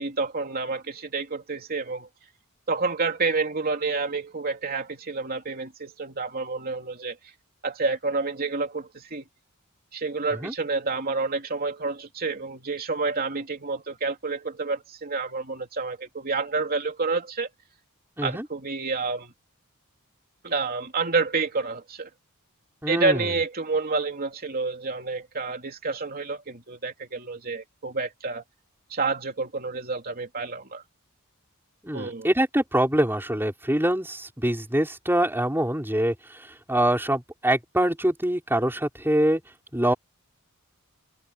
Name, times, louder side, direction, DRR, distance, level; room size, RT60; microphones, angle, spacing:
voice 1, 0.0-2.1 2.7-7.2 7.6-9.2 9.9-17.5 18.2-19.3 20.4-22.1 22.9-28.4 28.9-30.8 31.9-32.3, right 4 dB, 40° right, 3.1 m, -29 dB
voice 2, 22.8-23.4 31.8-39.4 39.7-39.9, right 1 dB, 10° right, 5.2 m, -24 dB
head